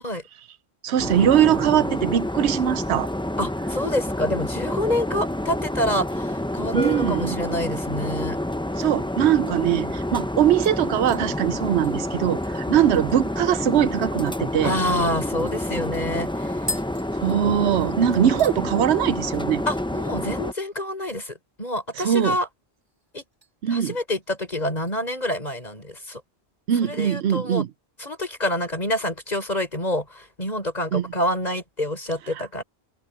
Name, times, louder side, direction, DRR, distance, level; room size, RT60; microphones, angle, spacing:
voice 1, 0.8-3.1 6.7-7.4 8.8-14.8 17.1-19.6 22.0-22.4 23.6-24.0 26.7-27.7 30.9-31.1 32.3-32.4, right 10 dB, 90° right, 0.9 m, -21 dB
sound 1, 1.0-20.5, left 1 dB, 5° left, 0.6 m, -28 dB
voice 2, 3.4-8.4 9.6-9.8 12.7-12.9 14.6-16.6 19.7-22.5 23.1-23.2 23.7-26.2 26.8-27.6 28.0-32.6, left 1 dB, 40° left, 6.5 m, -27 dB
sound 2, 10.6-13.5 13.8-13.9 14.3-14.4 14.9-17.9 18.1-18.6 19.0-19.4 19.6-19.7 21.8-22.5 22.8-23.5 23.9-24.2 24.8-25.7 26.0-26.1, left 2 dB, 25° right, 4.1 m, -41 dB
open air
omnidirectional pair, 1.1 m